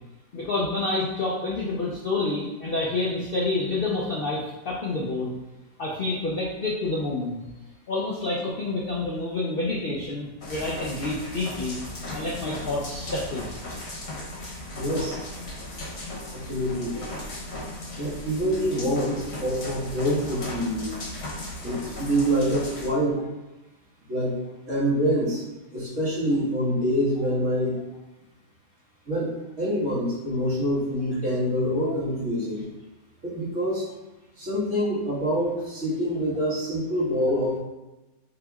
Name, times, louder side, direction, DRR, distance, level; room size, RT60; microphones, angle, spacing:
voice 1, 0.3-5.3 5.8-7.4 7.9-11.8 12.1-13.5, left 2 dB, 70° left, -4 dB, 0.5 m, -28 dB
sound 1, 10.4-22.9, left 1 dB, 45° left, 1.2 m, -36 dB
voice 2, 14.7-15.2 16.3-17.1 18.0-20.9 21.6-23.3 24.1-24.4 24.7-25.4 25.7-27.8 29.1-32.6 33.2-33.9 34.4-37.6, equal, 45° right, -8 dB, 1.8 m, -26 dB
7.2 x 2.9 x 2.3 m, 1.1 s
omnidirectional pair, 1.8 m